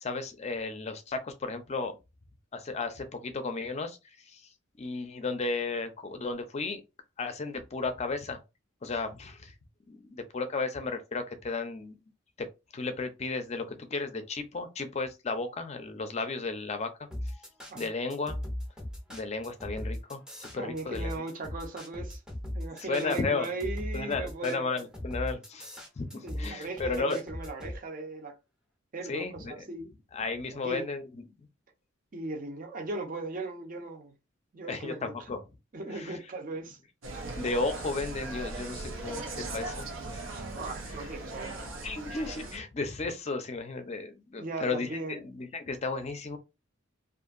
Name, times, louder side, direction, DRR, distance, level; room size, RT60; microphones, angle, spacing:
voice 1, 0.0-1.9 2.5-4.0 4.3-4.4 4.8-6.8 7.2-8.4 8.8-9.5 9.9-12.0 12.4-12.5 12.7-16.9 17.7-18.4 19.1-21.1 22.9-23.5 23.9-25.7 26.0-27.2 29.1-29.6 30.1-31.2 34.7-35.4 35.9-36.2 37.4-39.8 40.1-40.2 41.8-46.4, left 3 dB, 35° left, 0.5 m, -34 dB
sound 1, 17.1-27.8, left 1 dB, 5° right, 0.6 m, -38 dB
voice 2, 20.6-22.2 22.5-24.7 26.2-28.4 28.9-29.9 30.5-30.9 32.1-34.1 34.5-35.3 35.7-36.8 40.3-41.7 44.4-45.2, right 2 dB, 45° right, 0.6 m, -38 dB
Insect, 37.0-42.6, right 2 dB, 85° right, 0.7 m, -39 dB
2.7 x 2.4 x 2.4 m
head